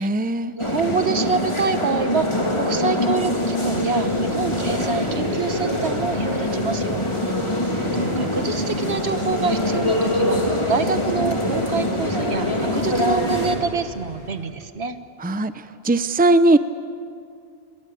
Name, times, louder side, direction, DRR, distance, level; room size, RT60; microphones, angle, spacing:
voice 1, 0.0-0.5 15.2-15.5 15.8-16.6, right 2 dB, 10° right, 12 dB, 0.6 m, -18 dB
sound 1, 0.6-13.6, left 1 dB, 25° left, 3.2 m, -23 dB
voice 2, 0.6-7.3 7.9-15.0, right 5 dB, 85° right, 10 dB, 1.6 m, -27 dB
sound 2, 3.2-14.5, left 1 dB, 60° right, 3.7 m, -36 dB
sound 3, 3.3-10.4, right 1 dB, 45° left, 4.1 m, -46 dB
30.0 x 22.5 x 8.5 m, 2.3 s
omnidirectional pair, 1.1 m